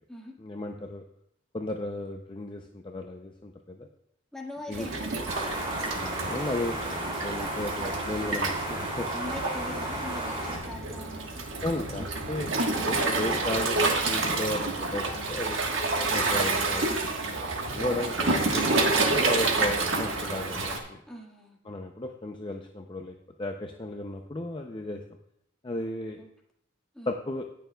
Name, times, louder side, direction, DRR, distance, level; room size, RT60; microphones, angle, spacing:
voice 1, 0.4-1.0 1.5-3.9 4.7-4.9 5.9-9.1 11.6-15.6 16.1-16.9 17.2-17.4 17.7-21.0 21.7-25.0 25.6-26.2 27.1-27.5, left 2 dB, 25° left, 3 dB, 0.5 m, -35 dB
voice 2, 4.3-5.3 9.1-11.4 17.8-18.1 21.1-21.6 26.1-26.3 26.9-27.1, left 1 dB, 5° left, -2 dB, 1.6 m, -42 dB
Waves surf, 4.7-20.8, right 3 dB, 70° right, 1.4 m, -29 dB
sound 1, 5.3-10.6, right 1 dB, 25° right, 2.8 m, -34 dB
18.0 x 6.6 x 2.3 m, 0.74 s
head